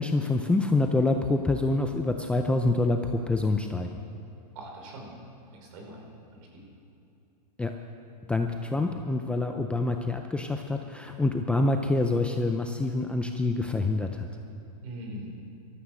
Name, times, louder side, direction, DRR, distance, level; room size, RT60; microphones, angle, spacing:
voice 1, 0.0-3.9 7.6-7.7 8.3-14.3, left 2 dB, 5° left, 4 dB, 0.5 m, -26 dB
voice 2, 4.5-5.2 5.5-6.1 6.3-6.6 14.8-15.3, right 1 dB, 55° right, 0 dB, 4.8 m, -42 dB
16.0 x 13.0 x 6.5 m, 2.7 s
hypercardioid pair, 140°, 21 cm